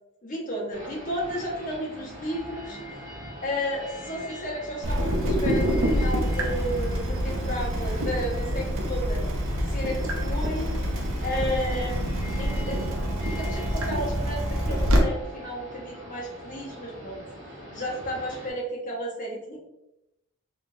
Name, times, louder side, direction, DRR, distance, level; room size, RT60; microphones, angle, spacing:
voice 1, 0.2-3.0 3.4-9.2 9.7-10.0 10.2-10.7 11.2-11.9 12.4-12.8 13.2-17.2 17.7-19.6, equal, 35° left, -3 dB, 1.1 m, -33 dB
sound 1, 0.7-18.5, equal, 35° right, 1.2 m, -41 dB
Water tap faucet / Drip, 4.8-15.0, equal, 60° right, 0.7 m, -26 dB
3.6 x 3.3 x 2.5 m, 0.89 s
head